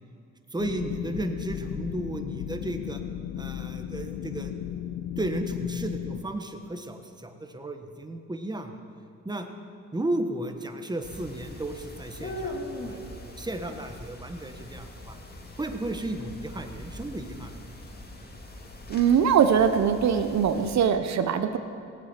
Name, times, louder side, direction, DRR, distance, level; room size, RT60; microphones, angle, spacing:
voice 1, 0.5-3.0 3.4-4.5 5.2-8.8 9.2-9.5 9.9-15.2 15.6-17.6, right 1 dB, 15° right, 6 dB, 1.3 m, -34 dB
sound 1, 0.6-6.2, left 10 dB, 85° left, 0.7 m, -35 dB
sound 2, 11.0-20.9, left 1 dB, 30° left, 2.1 m, -41 dB
voice 2, 18.9-21.6, right 7 dB, 65° right, 8 dB, 0.9 m, -22 dB
17.5 x 8.4 x 7.4 m, 2.6 s
cardioid pair, 90°, 30 cm